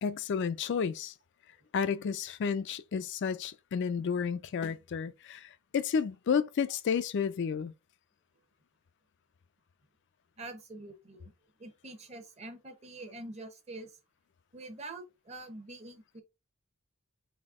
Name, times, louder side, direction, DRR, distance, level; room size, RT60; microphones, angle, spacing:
voice 1, 0.0-1.1 1.7-7.7, left 6 dB, 55° left, 0.4 m, -31 dB
voice 2, 10.4-11.3 11.6-14.0 14.5-16.2, right 2 dB, 30° right, 0.8 m, -45 dB
4.1 x 2.7 x 3.5 m
head